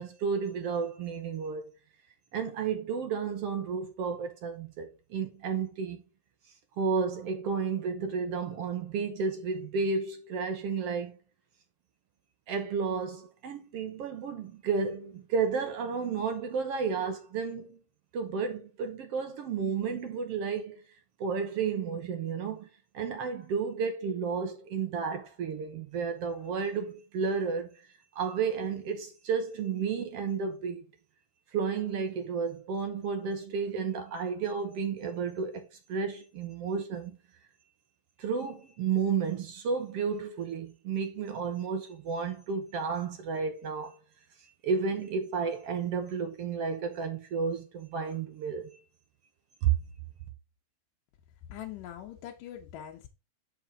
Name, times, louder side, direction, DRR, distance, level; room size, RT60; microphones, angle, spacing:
voice 1, 0.0-1.7 2.3-6.0 6.8-11.2 12.5-17.8 18.1-20.8 21.2-22.7 22.9-27.7 28.1-30.8 31.5-37.2 38.2-43.9 44.6-48.8 49.6-49.7, right 5 dB, 65° right, 1.6 m, -32 dB
voice 2, 51.5-53.1, left 11 dB, 85° left, 2.5 m, -42 dB
7.2 x 5.9 x 3.8 m
omnidirectional pair, 3.7 m